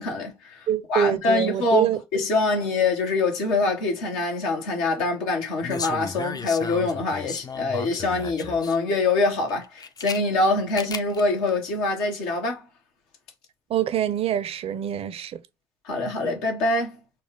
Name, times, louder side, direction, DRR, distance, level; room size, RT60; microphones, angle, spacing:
voice 1, 0.0-12.7 15.8-17.0, left 3 dB, 80° left, 1.2 m, -24 dB
voice 2, 0.7-2.0 13.7-15.4, right 10 dB, 55° right, 0.5 m, -25 dB
sound 1, 5.6-8.8 9.5-10.2 10.7-11.2 11.5-11.6, left 5 dB, 30° left, 0.5 m, -34 dB
4.2 x 2.3 x 3.5 m
hypercardioid pair, 50°, 12 cm